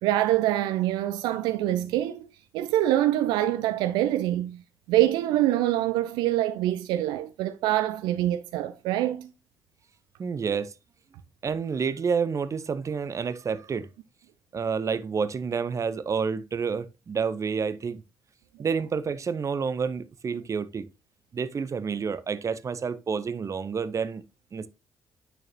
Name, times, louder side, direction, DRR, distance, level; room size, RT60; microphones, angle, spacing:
voice 1, 0.0-2.3 2.5-4.6 4.9-9.3, right 13 dB, 70° right, 0.5 m, -25 dB
voice 2, 10.2-10.7 11.4-13.9 14.5-18.0 18.6-20.9 21.3-24.2 24.5-24.7, right 5 dB, 40° right, 0.8 m, -29 dB
9.2 x 6.3 x 2.9 m
figure-of-eight pair, 40°, 8 cm